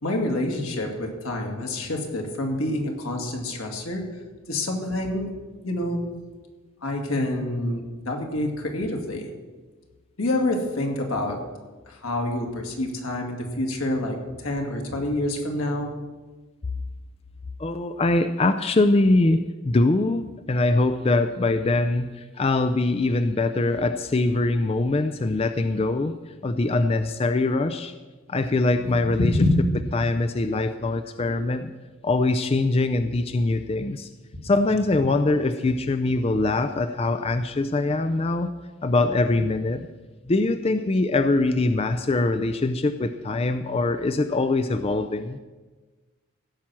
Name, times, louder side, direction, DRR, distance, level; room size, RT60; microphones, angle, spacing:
voice 1, 0.0-4.0 4.5-5.3 5.6-6.0 6.8-9.3 10.2-11.4 11.9-15.9 28.8-29.5 34.4-34.5, left 1 dB, 85° left, 2 dB, 2.2 m, -27 dB
voice 2, 17.6-19.4 19.6-27.9 28.3-29.3 29.9-31.7 32.0-34.1 34.4-38.5 38.8-39.9 40.3-45.4, left 2 dB, 30° left, 9 dB, 0.4 m, -23 dB
15.0 x 5.8 x 7.5 m, 1.3 s
head